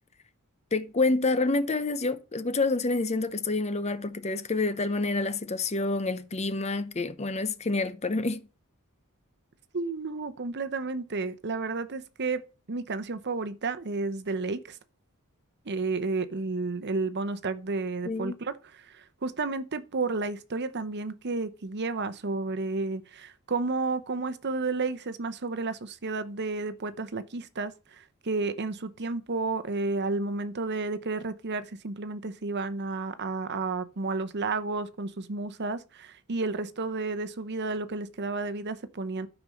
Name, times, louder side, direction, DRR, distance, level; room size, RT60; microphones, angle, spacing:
voice 1, 0.7-8.4 18.1-18.4, left 3 dB, 30° left, 0.8 m, -28 dB
voice 2, 9.7-12.4 12.7-14.8 15.6-39.3, right 3 dB, 50° right, 0.8 m, -32 dB
12.5 x 5.2 x 6.3 m
head